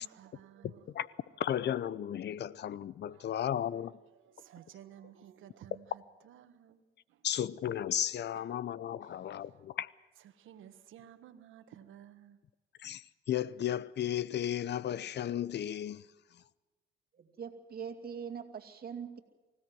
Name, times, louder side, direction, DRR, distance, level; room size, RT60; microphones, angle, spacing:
voice 1, 0.0-1.6 3.1-7.3 8.3-8.7 9.0-9.7 10.2-12.4, right 10 dB, 80° right, 1.5 m, -56 dB
voice 2, 0.6-1.1 1.4-3.9 7.2-9.9 12.8-16.0, left 10 dB, 60° left, 0.7 m, -34 dB
voice 3, 17.1-19.2, right 7 dB, 50° right, 2.5 m, -42 dB
24.0 x 16.5 x 7.8 m
cardioid pair, 90°, 20 cm